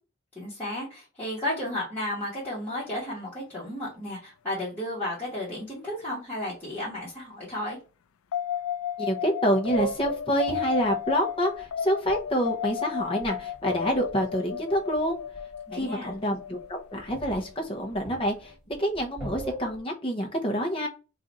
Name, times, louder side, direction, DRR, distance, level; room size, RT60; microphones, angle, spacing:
voice 1, 0.3-7.8 15.7-16.1, left 1 dB, 10° left, 1.3 m, -33 dB
sound 1, 8.3-18.5, left 9 dB, 85° left, 0.4 m, -34 dB
voice 2, 9.0-15.2 15.7-18.5 18.8-20.9, equal, 25° left, 0.7 m, -27 dB
sound 2, 9.6-12.5 13.0-14.3 14.9-15.5 15.8-15.9 16.1-16.2 16.6-16.7 17.0-19.8, right 4 dB, 5° right, 1.9 m, -38 dB
3.8 x 2.5 x 4.2 m
head